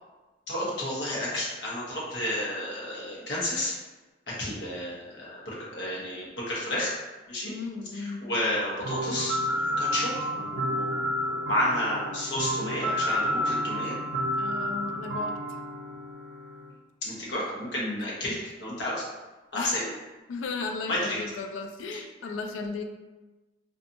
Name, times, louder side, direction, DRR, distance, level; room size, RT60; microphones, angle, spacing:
voice 1, 0.5-3.8 4.4-6.9 7.3-7.5 7.9-14.0 17.0-19.0 19.5-19.8 20.9-21.2, left 1 dB, 65° left, -5 dB, 0.8 m, -31 dB
voice 2, 7.4-8.2 14.4-15.4 19.5-19.9 20.3-22.8, left 4 dB, 80° left, 6 dB, 0.3 m, -35 dB
sound 1, 8.8-16.7, equal, 60° right, 0.5 m, -30 dB
2.6 x 2.4 x 2.5 m, 1.2 s
head